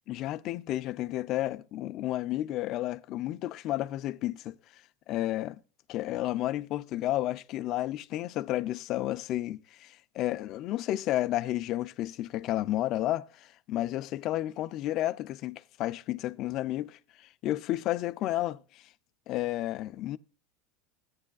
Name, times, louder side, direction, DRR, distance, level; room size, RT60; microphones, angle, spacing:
voice 1, 0.1-4.5 5.1-5.6 5.9-18.8 19.3-20.2, left 14 dB, 50° left, 0.5 m, -32 dB
15.0 x 9.5 x 2.3 m
hypercardioid pair, 100°, 0 cm